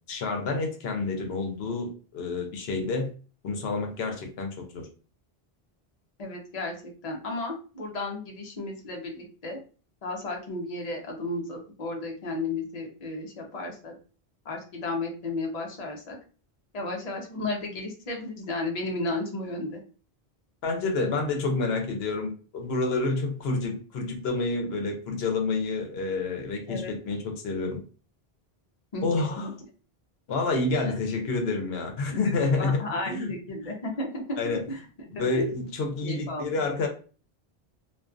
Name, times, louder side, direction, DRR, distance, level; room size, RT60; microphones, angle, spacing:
voice 1, 0.1-3.1 3.4-4.9 20.6-27.8 29.0-29.5 30.3-32.8 33.1-33.3 33.6-33.7 34.4-34.6 35.1-36.9, left 3 dB, 75° left, 3 dB, 0.9 m, -28 dB
voice 2, 6.2-9.6 10.0-13.9 14.4-16.2 16.7-19.8 26.7-26.9 28.9-29.5 32.1-34.4 34.7-34.8 35.2-35.5 36.0-36.5, left 2 dB, 45° left, 1 dB, 0.7 m, -33 dB
2.4 x 2.2 x 2.4 m, 0.37 s
omnidirectional pair, 1.1 m